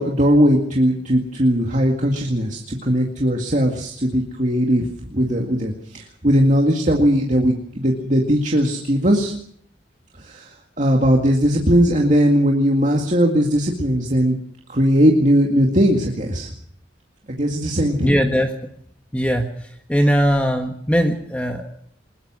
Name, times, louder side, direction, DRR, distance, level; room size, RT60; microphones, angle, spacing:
voice 1, 0.0-9.3 10.2-10.5 10.8-14.4 14.7-16.5 17.4-18.1, equal, 40° right, 0 dB, 2.1 m, -18 dB
voice 2, 18.0-18.5 19.1-21.8, equal, 5° left, 3 dB, 1.5 m, -20 dB
22.0 x 20.5 x 6.2 m, 0.64 s
head